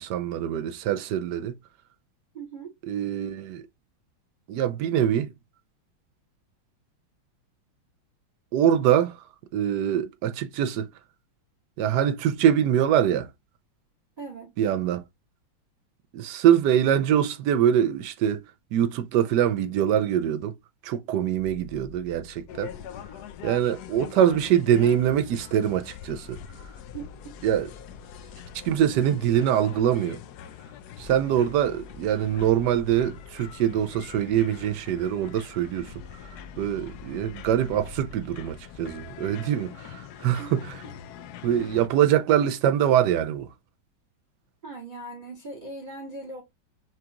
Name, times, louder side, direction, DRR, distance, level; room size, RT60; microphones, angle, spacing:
voice 1, 0.0-1.5 2.9-3.7 4.5-5.3 8.5-9.2 9.5-10.9 11.8-13.3 14.6-15.0 16.1-18.4 18.7-20.6 20.8-22.7 23.4-26.4 27.4-27.7 28.6-30.2 31.0-35.9 36.6-40.8 41.4-43.5, right 10 dB, 75° right, 1.0 m, -24 dB
voice 2, 2.3-2.7 14.2-14.5 26.9-27.1 40.4-40.5 40.8-40.9 44.6-46.4, right 3 dB, 35° right, 0.9 m, -39 dB
sound 1, 21.4-25.4 26.2-40.2, left 3 dB, 70° left, 1.7 m, -52 dB
sound 2, 22.5-41.9, left 9 dB, 90° left, 0.8 m, -43 dB
6.0 x 2.4 x 2.8 m
omnidirectional pair, 2.3 m